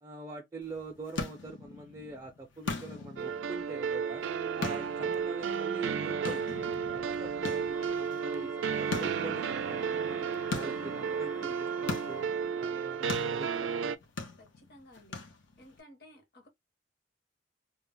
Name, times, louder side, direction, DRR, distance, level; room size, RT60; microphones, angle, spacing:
voice 1, 0.0-4.2 4.6-10.3 10.5-12.3 12.5-13.8, right 3 dB, 20° right, 0.4 m, -44 dB
bouncing ball small echo, 0.6-15.8, left 4 dB, 85° left, 0.6 m, -42 dB
sound 1, 3.2-14.0, right 6 dB, 85° right, 0.3 m, -33 dB
sound 2, 7.7-12.3, left 5 dB, 35° left, 0.6 m, -50 dB
voice 2, 14.4-15.2 15.6-16.5, left 1 dB, 55° left, 0.9 m, -55 dB
2.2 x 2.0 x 3.6 m
head